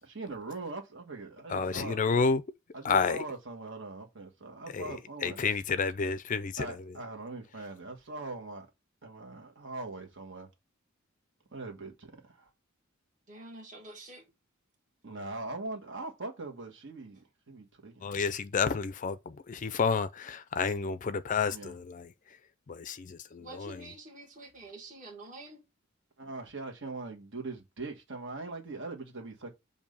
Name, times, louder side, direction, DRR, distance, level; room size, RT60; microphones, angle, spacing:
voice 1, 0.0-2.0 2.7-5.4 6.6-8.7 9.0-10.5 11.5-12.5 15.0-18.1 21.5-21.7 26.2-29.5, right 3 dB, 60° right, 1.5 m, -41 dB
voice 2, 1.5-2.4 2.8-3.2 4.7-6.9 18.0-22.1 22.7-23.9, left 5 dB, 40° left, 0.4 m, -30 dB
voice 3, 13.3-14.2 23.4-25.6, right 2 dB, 40° right, 1.8 m, -47 dB
7.1 x 2.7 x 5.4 m
head